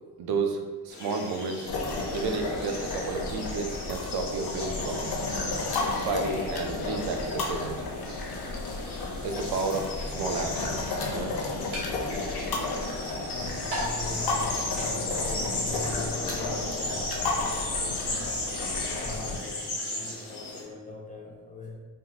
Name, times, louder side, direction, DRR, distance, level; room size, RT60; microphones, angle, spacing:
voice 1, 0.2-1.7 2.1-5.1 5.9-7.7 9.2-11.3, right 4 dB, 70° right, 4 dB, 0.5 m, -32 dB
sound 1, 0.9-20.6, left 2 dB, 80° left, 1.0 m, -36 dB
sound 2, 1.7-19.4, left 3 dB, 65° left, 0.6 m, -33 dB
sound 3, 7.5-14.9, equal, 85° right, 1.2 m, -43 dB
voice 2, 13.0-18.4 18.7-21.8, left 2 dB, 20° left, -4 dB, 0.3 m, -41 dB
3.5 x 2.4 x 2.7 m, 1.4 s
wide cardioid pair, 135°, 40 cm